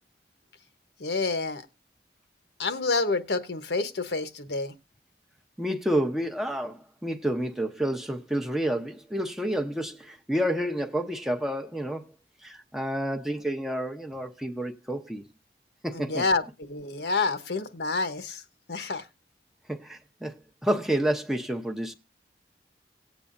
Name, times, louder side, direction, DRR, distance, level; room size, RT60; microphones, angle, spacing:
voice 1, 1.0-1.6 2.6-4.7 15.9-18.4 18.7-19.0, left 3 dB, 75° left, 1.0 m, -28 dB
voice 2, 5.6-12.1 12.4-15.2 15.8-16.2 17.1-17.2 19.7-20.3 20.6-21.9, right 1 dB, ahead, 0.7 m, -29 dB
18.5 x 8.2 x 2.5 m
head